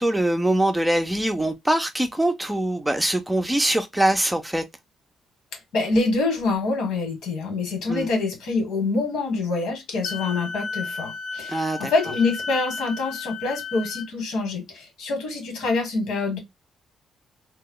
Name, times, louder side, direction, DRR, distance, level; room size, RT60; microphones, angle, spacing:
voice 1, 0.0-4.6 7.9-8.1 11.5-11.9, right 1 dB, 5° right, 0.5 m, -23 dB
voice 2, 5.7-16.4, left 3 dB, 90° left, 1.8 m, -25 dB
Wind instrument woodwind instrument, 10.0-14.1, left 5 dB, 55° left, 0.4 m, -34 dB
2.8 x 2.2 x 3.7 m
cardioid pair, 145°, 0 cm